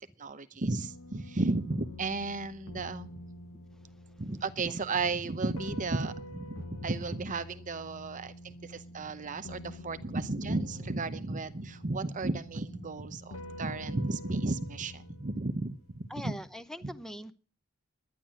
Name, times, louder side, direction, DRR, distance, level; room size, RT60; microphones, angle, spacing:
voice 1, 0.2-3.1 4.2-16.3 16.8-16.9, right 3 dB, 35° right, 12 dB, 0.8 m, -34 dB
sound 1, 0.7-16.2, left 1 dB, 70° left, 1.5 m, -47 dB
voice 2, 16.1-17.3, equal, ahead, 11 dB, 0.7 m, -41 dB
10.5 x 10.5 x 7.5 m, 0.37 s
head